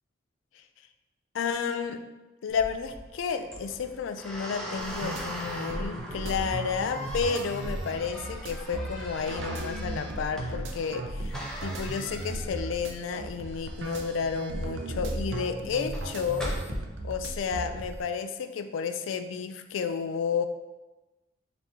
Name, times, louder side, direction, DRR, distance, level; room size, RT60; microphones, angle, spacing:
voice 1, 1.3-2.0 2.4-16.6 17.0-20.5, left 6 dB, 75° left, 9 dB, 0.3 m, -31 dB
sound 1, 2.5-16.8, equal, 5° left, 0.5 m, -41 dB
sound 2, 4.8-18.0, right 1 dB, 75° right, 0.5 m, -36 dB
3.9 x 2.8 x 3.5 m, 1.1 s
head